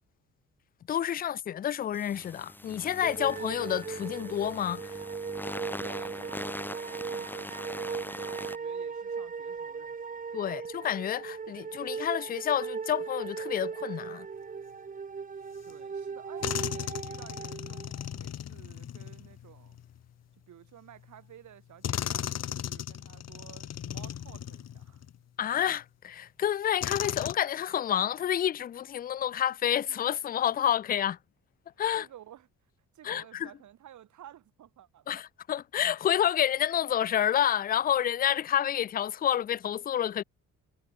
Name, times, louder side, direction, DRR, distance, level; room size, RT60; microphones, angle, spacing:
voice 1, 0.9-5.0 10.3-14.3 25.4-31.2 31.8-32.1 33.0-33.2 35.1-40.2, left 10 dB, 30° left, 0.4 m, -29 dB
sound 1, 1.9-8.6, left 1 dB, 5° left, 1.6 m, -41 dB
sound 2, 3.0-18.1, right 5 dB, 25° right, 1.0 m, -38 dB
voice 2, 5.8-10.2 15.6-19.8 20.5-25.0 29.9-30.0 32.0-32.5 32.9-35.2, right 11 dB, 70° right, 5.9 m, -53 dB
sound 3, 15.7-15.8 16.4-20.0 21.0-21.1 21.8-25.2 25.8-25.9 26.8-27.4, left 10 dB, 60° left, 1.8 m, -36 dB
cardioid pair, 90°, 30 cm